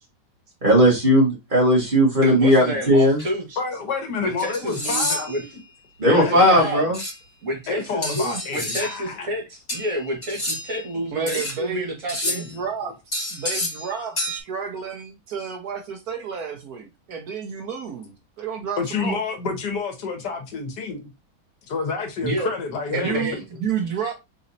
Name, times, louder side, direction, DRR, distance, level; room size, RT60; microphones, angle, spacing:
voice 1, 0.6-3.2 6.0-7.0, equal, 30° right, 2.0 m, -17 dB
voice 2, 2.2-3.5 4.2-5.4 6.1-6.9 7.4-12.5 22.2-22.5 22.9-23.4, right 1 dB, 50° right, 2.1 m, -29 dB
sound 1, 3.2-3.3 4.4-5.4 6.9-7.1 8.0-9.0 9.7-10.8 11.3-11.6 12.1-12.5 13.1-13.9 14.2-14.4, left 1 dB, 35° left, 2.9 m, -29 dB
voice 3, 3.6-5.5 6.2-6.6 7.7-9.3 12.2-12.5 18.8-21.1 21.7-23.3, left 4 dB, 75° left, 1.7 m, -29 dB
voice 4, 11.1-11.9 12.3-13.0 13.3-19.2 22.9-24.2, right 6 dB, 65° right, 1.3 m, -31 dB
4.1 x 4.0 x 2.7 m
omnidirectional pair, 1.8 m